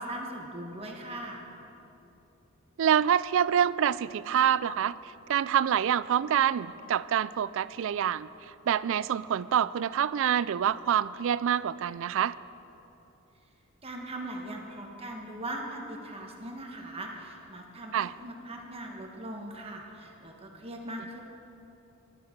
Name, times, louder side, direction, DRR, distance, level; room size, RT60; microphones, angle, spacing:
voice 1, 0.0-1.4 13.8-21.2, right 1 dB, 25° right, 1 dB, 1.4 m, -40 dB
voice 2, 2.8-4.9 5.3-8.3 8.7-12.3 17.9-18.1, right 9 dB, 60° right, 18 dB, 0.3 m, -26 dB
15.5 x 12.0 x 5.2 m, 2.9 s
head